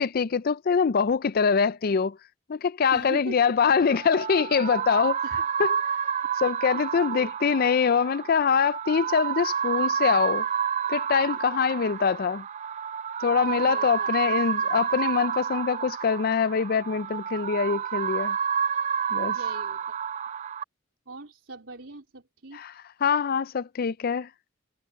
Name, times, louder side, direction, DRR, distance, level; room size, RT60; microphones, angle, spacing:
voice 1, 0.0-2.2 2.5-5.2 5.6-5.7 6.4-10.5 10.9-12.5 13.2-18.4 19.1-19.4 22.5-22.7 23.0-24.3, left 6 dB, 50° left, 0.4 m, -24 dB
voice 2, 2.9-3.4 5.2-5.4 6.7-7.3 13.4-14.1 19.2-20.0 21.1-22.8, right 2 dB, 85° right, 3.8 m, -41 dB
sound 1, 3.6-20.6, right 7 dB, 40° right, 0.4 m, -29 dB
head